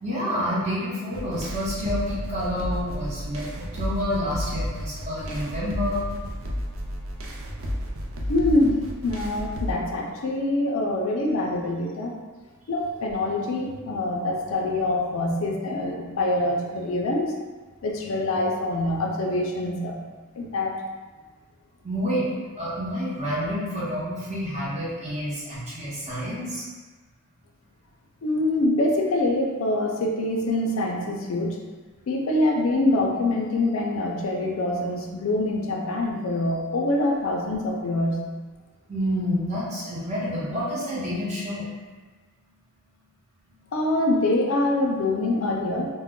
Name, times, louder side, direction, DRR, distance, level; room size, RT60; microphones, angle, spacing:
voice 1, 0.0-6.0 20.3-20.5 21.8-22.3 22.6-26.7 38.9-41.7, equal, 35° right, -8 dB, 0.9 m, -28 dB
sound 1, 1.1-9.7, equal, 70° right, 0.4 m, -32 dB
voice 2, 8.3-12.1 12.7-17.3 17.8-20.0 20.4-20.7 28.2-31.6 32.1-38.2 43.7-45.9, left 2 dB, 65° left, 0 dB, 0.4 m, -25 dB
2.2 x 2.1 x 3.6 m, 1.3 s
head